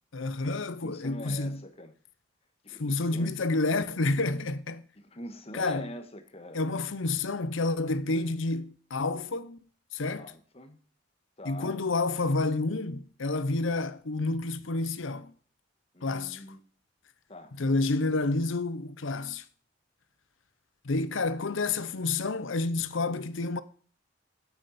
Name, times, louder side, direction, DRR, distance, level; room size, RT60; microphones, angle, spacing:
voice 1, 0.1-1.6 2.8-4.8 5.5-5.9 6.5-9.6 9.9-10.3 11.4-15.3 16.0-16.4 17.6-19.4 20.8-23.6, left 3 dB, 75° left, 0.7 m, -29 dB
voice 2, 0.8-1.9 2.6-3.3 5.0-6.7 10.2-10.8 11.4-11.9 15.9-16.6 17.3-17.5, left 1 dB, 30° left, 1.4 m, -43 dB
9.0 x 8.8 x 4.2 m
head